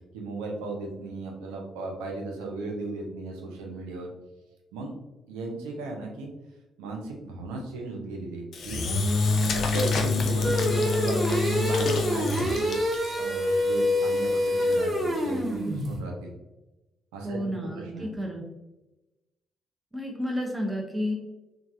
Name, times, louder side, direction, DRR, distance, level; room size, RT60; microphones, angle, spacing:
voice 1, 0.1-4.1 4.7-5.0 5.3-6.3 6.8-8.8 9.3-12.8 13.2-16.3 17.1-18.1, right 2 dB, 75° right, 1 dB, 0.6 m, -36 dB
Engine / Drill, 8.5-13.1, left 3 dB, 55° left, 0.4 m, -26 dB
sound 1, 10.4-16.0, left 1 dB, 35° right, 1.4 m, -26 dB
voice 2, 17.2-18.4 19.9-21.1, equal, 15° right, 0 dB, 0.7 m, -31 dB
3.2 x 2.4 x 2.5 m, 1.0 s
hypercardioid pair, 45°, 0 cm